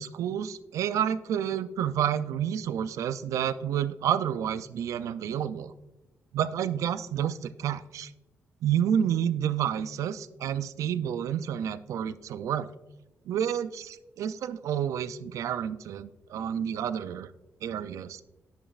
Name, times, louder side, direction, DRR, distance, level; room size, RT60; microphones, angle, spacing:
voice 1, 0.0-5.7 6.3-8.1 8.6-12.7 13.3-17.3 17.6-18.2, right 9 dB, 85° right, 14 dB, 0.4 m, -29 dB
10.5 x 7.1 x 2.4 m, 1.0 s
wide cardioid pair, 150°, 5 cm